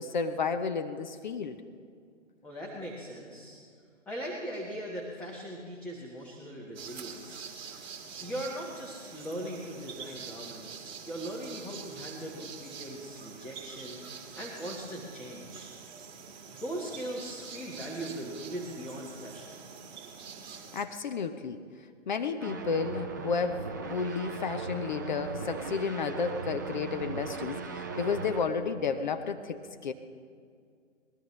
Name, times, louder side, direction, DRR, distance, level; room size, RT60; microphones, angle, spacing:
voice 1, 0.0-1.6 20.7-21.6 22.1-29.9, left 5 dB, 40° left, 8 dB, 0.8 m, -32 dB
voice 2, 2.4-3.6 4.1-7.5 8.2-14.0 14.4-15.7 16.5-19.6, right 1 dB, 5° left, -4 dB, 1.3 m, -40 dB
sound 1, 6.7-20.8, right 6 dB, 35° right, 2.1 m, -46 dB
sound 2, 22.4-28.4, right 4 dB, 15° right, 0.5 m, -38 dB
22.0 x 20.0 x 3.2 m, 2.2 s
figure-of-eight pair, 145°, 38 cm